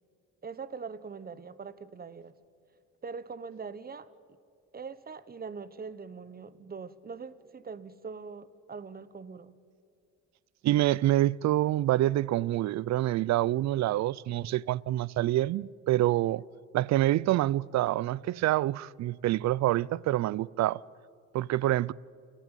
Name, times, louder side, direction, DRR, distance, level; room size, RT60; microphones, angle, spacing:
voice 1, 0.4-2.3 3.0-4.1 4.7-9.5, right 5 dB, 30° right, 1.0 m, -42 dB
voice 2, 10.6-16.4 16.7-20.8 21.3-21.9, right 14 dB, 65° right, 0.5 m, -26 dB
29.5 x 12.5 x 9.0 m
cardioid pair, 90°, 30 cm